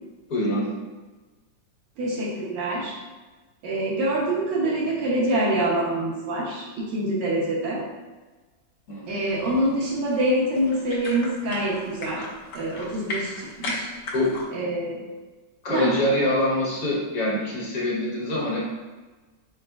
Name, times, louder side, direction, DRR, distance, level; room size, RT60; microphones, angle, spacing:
voice 1, 0.3-0.7 8.9-9.0 14.1-14.3 15.6-18.6, left 1 dB, 60° left, -5 dB, 1.6 m, -24 dB
voice 2, 2.0-2.9 3.6-7.8 9.1-12.2 12.5-13.9 14.5-15.0 15.7-15.9, right 1 dB, 85° right, -6 dB, 1.5 m, -25 dB
sound 1, 9.1-14.5, left 2 dB, 80° left, 1.4 m, -37 dB
4.1 x 4.0 x 2.3 m, 1.3 s
omnidirectional pair, 1.9 m